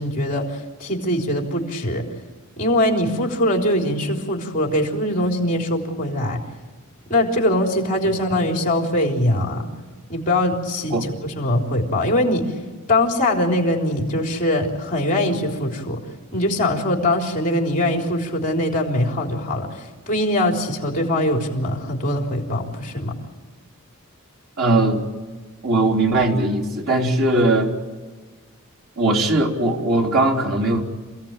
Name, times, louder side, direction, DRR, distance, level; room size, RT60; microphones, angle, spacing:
voice 1, 0.0-2.1 2.6-6.4 7.1-9.7 10.1-12.5 12.9-16.0 16.3-23.1, left 1 dB, 40° left, 1 dB, 3.8 m, -22 dB
voice 2, 24.6-25.0 25.6-27.8 29.0-30.8, right 2 dB, 75° right, -2 dB, 3.8 m, -19 dB
28.0 x 17.0 x 9.0 m, 1.4 s
head